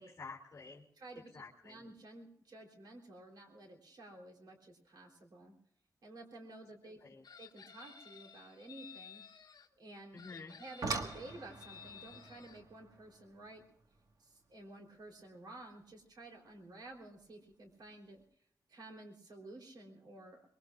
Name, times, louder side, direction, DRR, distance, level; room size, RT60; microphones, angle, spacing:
voice 1, 0.0-0.8 1.3-1.8 6.8-7.2 10.1-10.6, left 4 dB, 35° left, -1 dB, 2.8 m, -50 dB
voice 2, 1.0-5.5 6.0-7.0 7.4-9.2 9.8-10.2 10.5-13.6 14.2-18.2 18.7-20.4, right 2 dB, 85° right, 2 dB, 3.7 m, -52 dB
Chicken rooster, 7.2-9.7 10.2-12.6, left 6 dB, 70° left, 1.0 m, -55 dB
sound 1, 10.5-15.6 16.9-17.0 17.6-17.9 18.2-18.3, right 3 dB, 60° right, 1.7 m, -44 dB
24.5 x 21.5 x 2.5 m, 0.70 s
wide cardioid pair, 135°, 7 cm